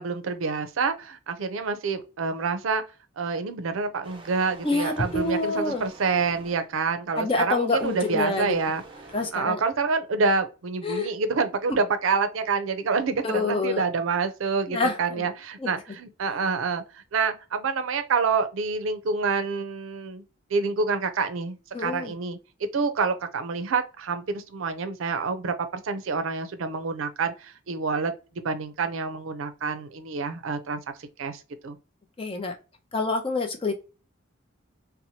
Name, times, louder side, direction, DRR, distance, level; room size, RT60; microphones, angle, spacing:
voice 1, 0.0-2.8 3.2-8.8 9.3-20.2 20.5-31.8, right 4 dB, 75° right, 0.5 m, -27 dB
sound 1, 4.0-6.8 7.7-9.3, right 2 dB, 25° right, 0.5 m, -47 dB
voice 2, 4.6-5.8 7.2-8.6 9.1-9.6 10.8-11.1 13.2-13.8 14.7-15.3 15.6-15.7 21.7-22.1 32.2-32.6 32.9-33.7, left 3 dB, 25° left, 0.5 m, -27 dB
2.7 x 2.1 x 2.8 m
head